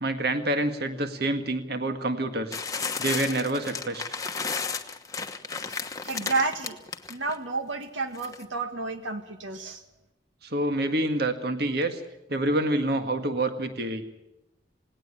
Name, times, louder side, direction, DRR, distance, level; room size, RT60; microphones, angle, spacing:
voice 1, 0.0-2.6 3.0-4.2 10.4-12.0 12.3-14.0, right 1 dB, 55° right, 7 dB, 1.8 m, -27 dB
sound 1, 2.5-7.4 8.1-8.4, left 5 dB, 20° left, 1.1 m, -33 dB
voice 2, 6.0-6.8 7.1-9.8, right 3 dB, 80° right, 7 dB, 1.7 m, -30 dB
18.5 x 18.5 x 8.9 m, 0.90 s
head